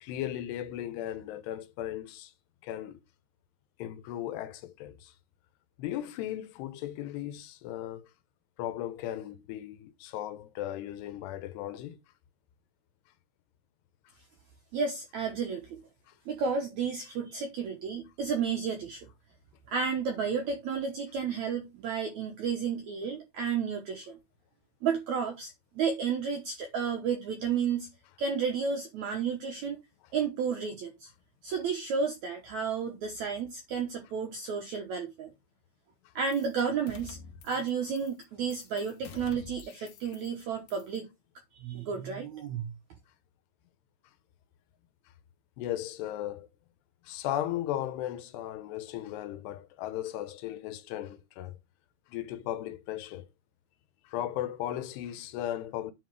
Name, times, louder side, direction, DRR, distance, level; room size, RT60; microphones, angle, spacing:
voice 1, 0.0-2.3 2.6-3.0 3.8-5.1 5.8-8.1 8.6-12.0 16.1-16.2 45.6-46.5 47.0-51.6 52.1-53.3 54.0-55.9, left 12 dB, 85° left, 3.0 m, -36 dB
voice 2, 14.7-15.8 16.3-19.1 19.7-24.2 24.8-27.9 28.2-29.8 30.1-31.1 31.4-35.3 36.1-37.2 37.4-41.1 41.5-42.7, right 6 dB, 80° right, 1.7 m, -32 dB
sound 1, 36.3-36.6 36.9-37.7 38.0-38.2 38.5-40.4 40.7-41.0, left 5 dB, 65° left, 2.3 m, -48 dB
10.0 x 4.1 x 4.7 m
omnidirectional pair, 4.7 m